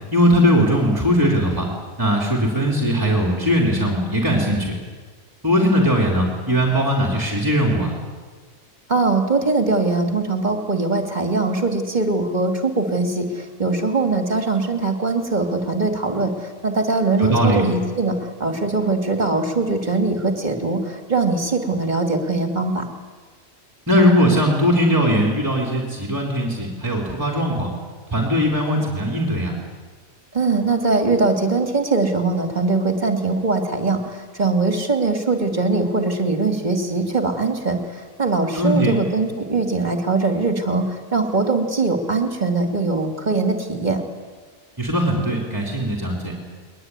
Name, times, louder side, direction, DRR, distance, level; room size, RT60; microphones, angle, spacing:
voice 1, 0.1-1.7 2.0-4.7 5.4-7.9 17.2-17.6 23.9-27.7 28.1-29.5 38.5-38.9 44.8-46.3, equal, 15° right, 0 dB, 3.7 m, -19 dB
voice 2, 8.9-22.9 30.3-44.0, right 3 dB, 35° right, 5 dB, 2.8 m, -21 dB
21.5 x 21.0 x 9.8 m, 1.5 s
omnidirectional pair, 1.4 m